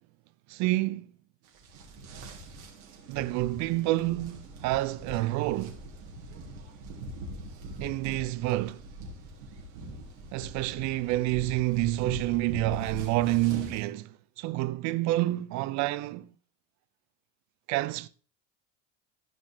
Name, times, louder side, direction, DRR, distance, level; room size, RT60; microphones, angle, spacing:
voice 1, 0.5-1.1 3.1-5.8 7.8-8.8 10.3-14.1 14.4-16.3 17.7-18.1, right 17 dB, 50° right, 0.7 m, -28 dB
sound 1, 1.5-13.8, right 2 dB, 65° right, 3.2 m, -42 dB
15.0 x 5.3 x 3.4 m
hypercardioid pair, 80°, 37 cm